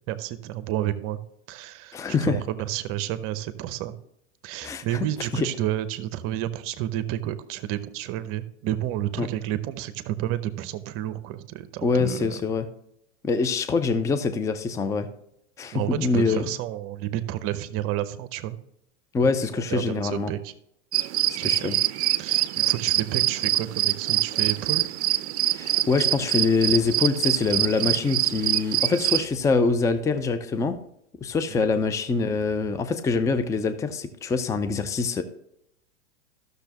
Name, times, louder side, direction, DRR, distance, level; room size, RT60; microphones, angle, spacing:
voice 1, 0.1-1.2 1.5-3.9 4.4-12.4 15.7-18.6 19.6-20.5 21.4-21.8 22.2-24.9 31.5-31.7, right 13 dB, 40° right, 12 dB, 0.8 m, -30 dB
voice 2, 1.9-2.4 4.6-4.8 5.3-5.5 9.2-9.3 11.8-12.7 13.2-15.1 15.6-16.4 19.1-20.3 21.3-21.8 25.5-30.8 31.2-35.2, left 4 dB, 10° left, 11 dB, 0.5 m, -24 dB
sound 1, 20.9-29.3, right 13 dB, 65° right, 0.5 m, -24 dB
13.0 x 6.6 x 2.9 m, 0.76 s
hypercardioid pair, 100°, 36 cm